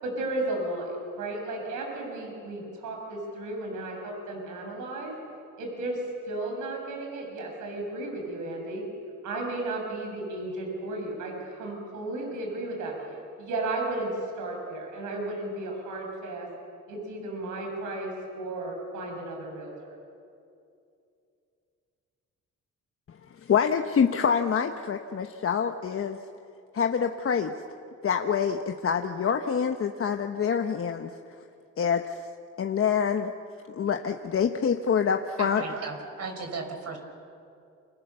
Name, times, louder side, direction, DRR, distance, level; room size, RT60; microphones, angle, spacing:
voice 1, 0.0-5.1 5.6-6.0 6.3-8.8 9.2-14.1 14.4-16.5 16.9-20.0, right 2 dB, 85° right, 1 dB, 6.6 m, -34 dB
voice 2, 23.4-26.2 26.7-27.5 28.0-31.1 31.8-32.0 32.6-33.3 33.7-35.6, left 7 dB, 45° left, 5 dB, 1.2 m, -26 dB
voice 3, 35.4-37.0, right 4 dB, 55° right, 4 dB, 5.1 m, -36 dB
28.5 x 26.0 x 6.9 m, 2.5 s
cardioid pair, 90°, 30 cm